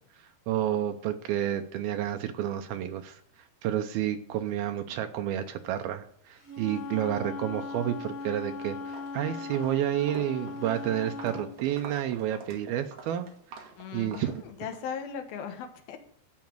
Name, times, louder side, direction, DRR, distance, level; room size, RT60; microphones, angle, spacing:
voice 1, 0.2-14.4, right 11 dB, 85° right, 7 dB, 2.2 m, -30 dB
Wind instrument woodwind instrument, 6.4-11.5, left 4 dB, 40° left, 0.8 m, -38 dB
Walk footsteps, 8.2-8.5 8.8-14.9, right 5 dB, 55° right, 3.0 m, -47 dB
voice 2, 13.8-16.0, left 7 dB, 70° left, 7 dB, 2.7 m, -38 dB
14.5 x 5.8 x 7.7 m, 0.63 s
omnidirectional pair, 5.1 m